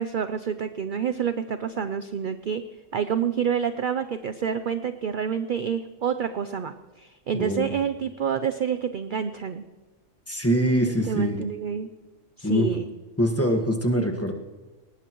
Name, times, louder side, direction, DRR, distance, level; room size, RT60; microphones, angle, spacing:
voice 1, 0.0-2.6 2.9-9.6 11.1-11.9 12.4-12.9, right 7 dB, 50° right, 10 dB, 0.6 m, -28 dB
voice 2, 7.3-7.8 10.3-11.4 12.4-12.7 13.2-14.3, equal, 10° left, 2 dB, 1.5 m, -24 dB
19.5 x 19.5 x 3.1 m, 1.3 s
omnidirectional pair, 1.3 m